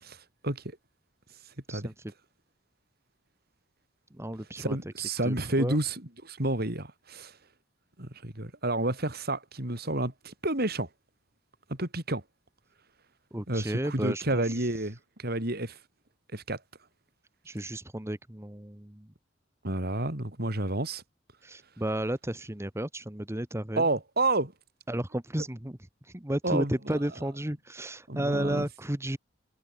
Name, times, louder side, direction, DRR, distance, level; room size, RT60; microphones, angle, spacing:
voice 1, 0.0-0.6 1.7-1.9 4.6-7.4 8.0-10.9 11.7-12.2 13.5-15.8 16.3-16.6 19.6-21.0 23.8-24.5 26.4-27.0 28.1-28.7, right 2 dB, 55° right, 4.6 m, -30 dB
voice 2, 4.1-4.8 5.2-5.8 13.3-14.7 17.4-19.1 21.4-23.9 24.9-25.8 26.0-29.2, right 1 dB, 15° right, 1.3 m, -33 dB
head